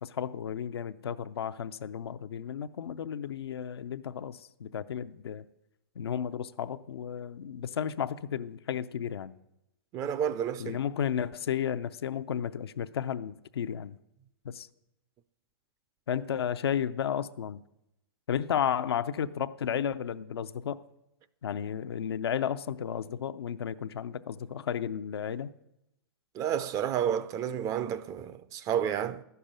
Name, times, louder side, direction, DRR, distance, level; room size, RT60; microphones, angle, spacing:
voice 1, 0.0-5.4 6.0-9.3 10.6-13.9 14.4-14.7 16.1-17.6 18.3-20.8 21.4-25.5, left 8 dB, 85° left, 0.6 m, -33 dB
voice 2, 9.9-10.8 26.3-29.2, right 9 dB, 25° right, 0.5 m, -30 dB
11.0 x 6.9 x 8.8 m
hypercardioid pair, 135°, 13 cm